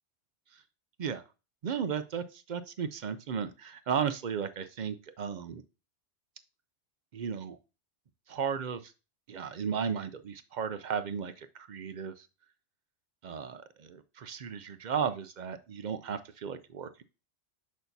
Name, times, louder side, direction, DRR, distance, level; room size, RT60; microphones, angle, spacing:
voice 1, 1.6-5.6 7.1-7.6 8.3-8.9 9.3-12.3 13.2-17.0, right 7 dB, 55° right, 11 dB, 0.5 m, -35 dB
6.3 x 5.8 x 2.6 m, 0.30 s
omnidirectional pair, 1.2 m